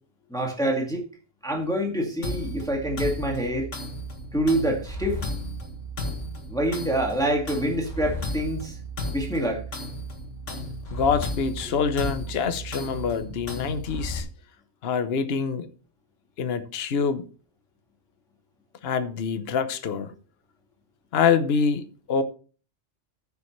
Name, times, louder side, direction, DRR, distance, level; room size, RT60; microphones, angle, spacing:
voice 1, 0.3-1.0 1.4-3.7 4.3-5.2 6.5-8.8 9.1-9.6, right 1 dB, 5° left, 2.0 m, -26 dB
sound 1, 2.2-14.2, equal, 70° left, 2.2 m, -34 dB
voice 2, 10.9-14.3 14.8-15.7 16.4-17.2 18.8-20.1 21.1-22.2, left 6 dB, 55° left, 1.1 m, -25 dB
14.5 x 7.1 x 3.2 m
omnidirectional pair, 1.3 m